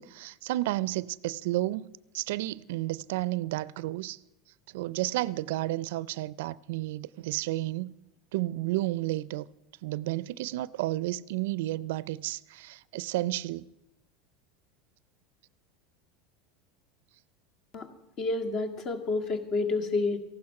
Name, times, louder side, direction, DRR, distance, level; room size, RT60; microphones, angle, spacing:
voice 1, 0.0-4.2 4.7-7.9 8.3-9.5 9.8-13.7, right 17 dB, 75° right, 0.4 m, -32 dB
voice 2, 18.2-20.2, left 3 dB, 45° left, 1.8 m, -29 dB
14.5 x 12.0 x 5.8 m
supercardioid pair, 105°, 0 cm